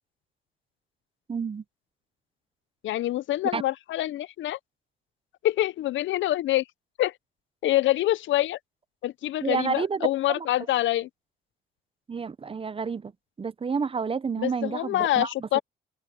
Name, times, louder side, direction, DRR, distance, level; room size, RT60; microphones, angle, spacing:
voice 1, 1.3-1.6 3.5-3.6 9.4-10.1 10.4-10.5 12.1-13.1 13.4-15.6, right 5 dB, 30° right, 0.7 m, -29 dB
voice 2, 2.8-4.6 5.4-6.6 7.0-7.1 7.6-8.6 9.0-11.1 14.4-15.6, left 14 dB, 70° left, 0.6 m, -26 dB
open air
cardioid pair, 90°, 20 cm